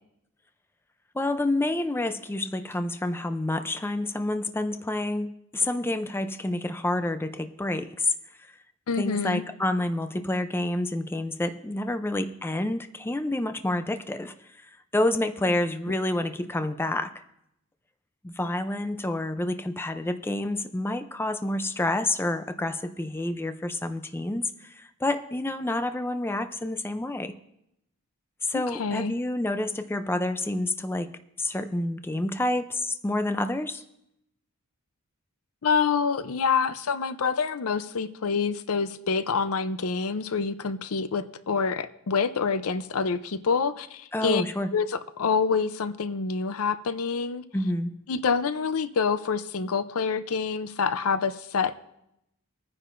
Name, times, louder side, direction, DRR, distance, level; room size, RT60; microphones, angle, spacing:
voice 1, 1.1-8.1 8.4-8.5 9.0-14.3 14.6-17.1 18.2-27.4 28.4-31.1 31.4-33.8 44.1-44.7 47.5-47.9, left 1 dB, 10° left, 9 dB, 0.4 m, -28 dB
voice 2, 8.9-9.4 28.5-29.1 35.6-44.4 44.7-47.4 48.1-51.7, left 5 dB, 70° left, 12 dB, 0.6 m, -27 dB
21.5 x 9.9 x 2.5 m, 0.79 s
head